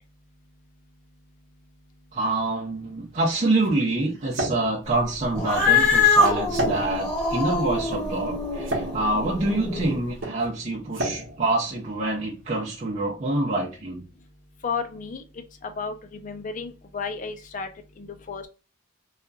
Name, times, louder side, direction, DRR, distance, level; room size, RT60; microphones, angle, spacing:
voice 1, 2.1-14.0, right 2 dB, 35° right, 0.6 m, -26 dB
sound 1, 2.7-12.5, right 1 dB, 75° right, 0.8 m, -35 dB
Cat, 5.3-10.0, left 3 dB, 5° left, 1.1 m, -23 dB
voice 2, 14.6-15.2 15.6-17.7 18.0-18.5, left 5 dB, 40° left, 0.5 m, -32 dB
2.9 x 2.4 x 2.3 m
head